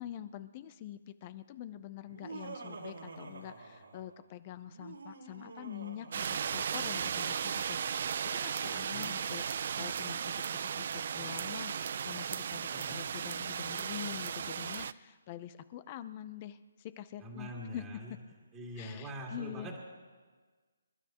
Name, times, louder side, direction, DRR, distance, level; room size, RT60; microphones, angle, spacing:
voice 1, 0.0-7.8 8.2-17.8 18.8-19.8, left 12 dB, 25° left, 14 dB, 0.5 m, -45 dB
Laughter, 2.0-4.2 4.7-7.0, right 3 dB, 85° right, 2.5 m, -48 dB
sound 1, 6.1-14.9, right 7 dB, 45° right, 0.4 m, -36 dB
voice 2, 8.6-9.1 12.7-13.0 17.2-18.1 18.5-19.8, equal, 10° right, -3 dB, 2.1 m, -44 dB
27.0 x 12.5 x 3.0 m, 1.4 s
hypercardioid pair, 165°, 0 cm